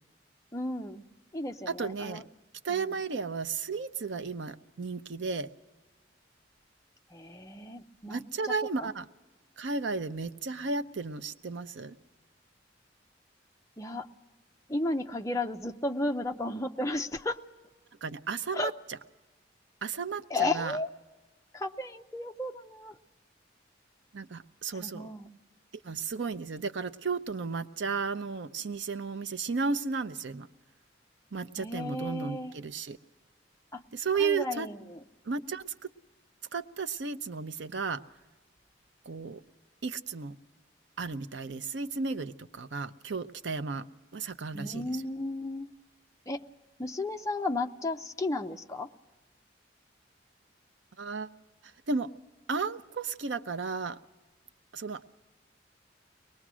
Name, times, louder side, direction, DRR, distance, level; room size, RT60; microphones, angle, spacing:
voice 1, 0.5-1.0 1.3-2.2 2.7-2.9 7.1-8.2 8.4-8.5 8.8-8.9 13.8-14.1 14.7-17.4 18.5-18.7 20.3-20.9 21.5-22.9 24.8-25.3 31.6-32.5 33.7-33.8 34.2-35.0 44.5-45.7 46.3-46.4 46.8-48.9, left 2 dB, 15° left, 4 dB, 0.6 m, -33 dB
voice 2, 1.7-2.2 2.6-5.5 8.1-9.1 9.6-12.0 18.0-19.0 19.8-20.8 24.1-25.1 25.8-30.5 31.3-33.0 33.9-34.7 35.3-35.9 36.5-38.0 39.1-39.4 39.8-40.4 41.0-43.9 44.1-45.0 51.0-51.3 51.9-52.1 52.5-54.0 54.7-55.0, right 4 dB, 70° right, 11 dB, 0.7 m, -34 dB
23.0 x 20.0 x 6.2 m, 1.2 s
head